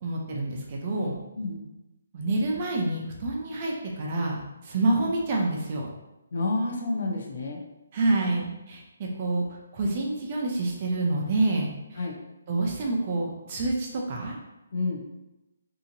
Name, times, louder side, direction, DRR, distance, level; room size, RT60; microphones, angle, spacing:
voice 1, 0.0-1.2 2.1-5.9 7.9-9.4 9.7-12.0 12.5-14.4, right 2 dB, 25° right, -1 dB, 0.4 m, -27 dB
voice 2, 6.3-7.6 12.0-12.2 14.7-15.0, left 3 dB, 55° left, 1 dB, 0.6 m, -29 dB
2.8 x 2.5 x 2.6 m, 0.98 s
hypercardioid pair, 175°, 0 cm